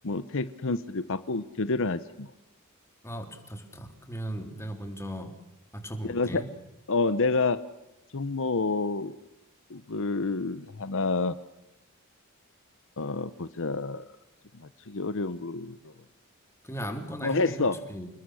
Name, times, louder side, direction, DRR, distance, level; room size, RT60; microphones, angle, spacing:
voice 1, 0.0-2.3 6.0-6.4 6.9-7.6 8.1-9.2 9.7-11.3 13.0-14.0 14.5-15.8 17.2-17.8, left 3 dB, 65° left, 13 dB, 0.9 m, -28 dB
voice 2, 3.0-5.3 5.7-6.4 16.6-18.1, equal, 10° left, 5 dB, 3.5 m, -37 dB
28.5 x 21.0 x 6.4 m, 0.93 s
head